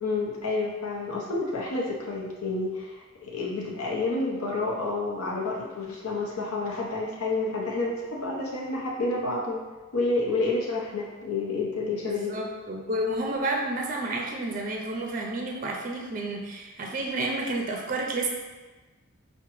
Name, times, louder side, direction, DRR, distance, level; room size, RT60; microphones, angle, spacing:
voice 1, 0.0-9.7 9.9-12.4, left 3 dB, 80° left, -4 dB, 0.7 m, -29 dB
voice 2, 12.1-18.3, right 2 dB, 35° right, 0 dB, 0.4 m, -30 dB
5.7 x 2.1 x 3.0 m, 1.3 s
head